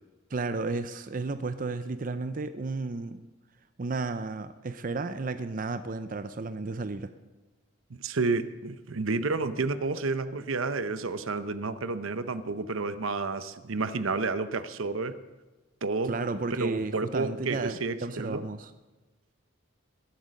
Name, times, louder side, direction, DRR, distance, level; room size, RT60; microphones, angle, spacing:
voice 1, 0.3-3.2 3.8-7.1 16.0-18.7, right 3 dB, 40° right, 11 dB, 0.5 m, -33 dB
voice 2, 7.9-15.2 15.8-16.1 16.6-18.4, right 3 dB, 80° right, 12 dB, 0.8 m, -30 dB
21.5 x 8.3 x 6.4 m, 1.2 s
head